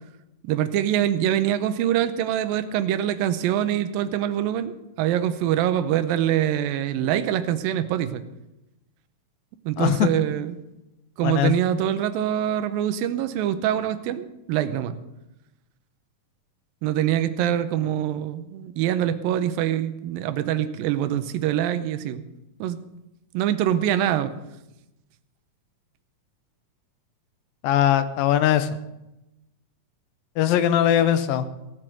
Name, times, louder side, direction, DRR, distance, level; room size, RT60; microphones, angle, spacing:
voice 1, 0.4-8.2 9.7-10.6 11.2-15.0 16.8-22.2 22.6-22.8 23.3-24.3, right 11 dB, 90° right, 12 dB, 2.5 m, -24 dB
voice 2, 9.8-10.1 11.2-11.5 27.6-28.7 30.4-31.5, left 11 dB, 85° left, 12 dB, 2.6 m, -20 dB
17.0 x 7.6 x 6.3 m, 0.93 s
omnidirectional pair, 3.9 m